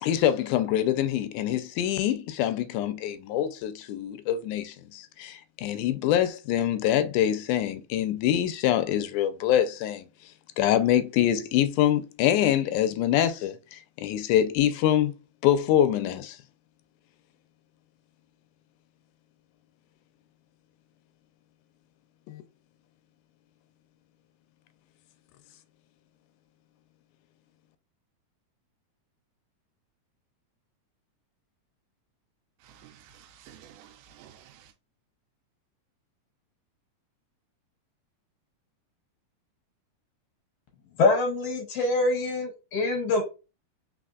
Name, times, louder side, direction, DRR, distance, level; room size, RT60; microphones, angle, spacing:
voice 1, 0.0-10.1 10.6-15.1 15.4-16.4 22.3-22.4, left 11 dB, 85° left, 2.0 m, -25 dB
voice 2, 32.7-34.7, right 9 dB, 80° right, 2.1 m, -52 dB
voice 3, 41.0-43.2, left 2 dB, 65° left, 1.7 m, -24 dB
4.2 x 4.2 x 2.4 m
omnidirectional pair, 3.6 m